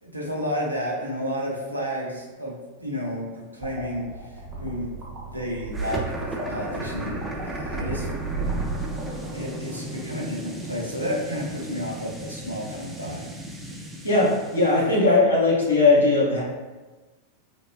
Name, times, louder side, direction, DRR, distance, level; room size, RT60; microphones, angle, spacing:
voice 1, 0.0-4.9 5.1-8.1 9.3-13.3, equal, 85° right, -3 dB, 0.5 m, -31 dB
sound 1, 3.6-9.7, right 3 dB, 30° right, 0.7 m, -34 dB
sound 2, 5.7-14.9, right 1 dB, 5° right, 0.3 m, -35 dB
sound 3, 6.1-11.8, left 1 dB, 50° left, 0.9 m, -45 dB
voice 2, 14.0-16.4, left 3 dB, 75° left, -5 dB, 0.8 m, -19 dB
2.9 x 2.1 x 2.3 m, 1.2 s
figure-of-eight pair, 90°, 0 cm